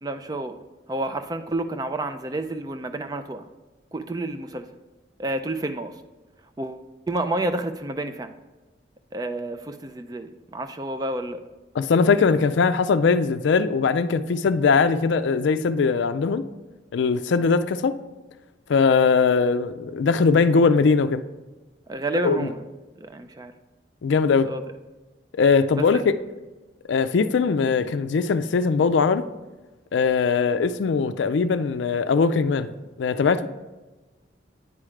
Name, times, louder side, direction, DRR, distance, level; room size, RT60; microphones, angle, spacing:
voice 1, 0.0-0.6 0.9-3.5 3.9-4.7 5.2-6.0 6.6-8.3 9.1-11.4 21.9-22.7 23.0-23.5 24.4-24.6 25.7-26.0, right 2 dB, 20° right, 0.3 m, -30 dB
voice 2, 11.8-16.5 16.9-18.0 18.7-21.2 22.2-22.5 24.0-24.5 25.3-26.2 26.9-29.3 29.9-32.7 33.0-33.5, left 5 dB, 80° left, 0.4 m, -20 dB
9.6 x 4.9 x 3.2 m
head